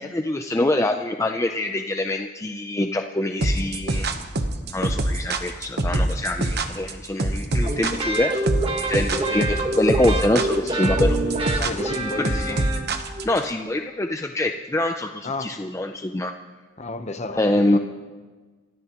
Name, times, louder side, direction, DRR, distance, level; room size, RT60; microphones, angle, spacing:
voice 1, 0.0-4.1 4.7-8.3 8.9-11.2 12.2-12.6 13.2-16.3 17.4-17.8, left 1 dB, 15° left, 4 dB, 0.5 m, -24 dB
sound 1, 3.4-13.4, right 2 dB, 55° right, 1.0 m, -24 dB
sound 2, 7.6-13.3, right 2 dB, 30° right, 1.6 m, -27 dB
voice 2, 11.2-12.6 15.2-15.5 16.8-17.8, left 2 dB, 35° left, 8 dB, 0.9 m, -32 dB
27.5 x 13.0 x 3.0 m, 1.4 s
head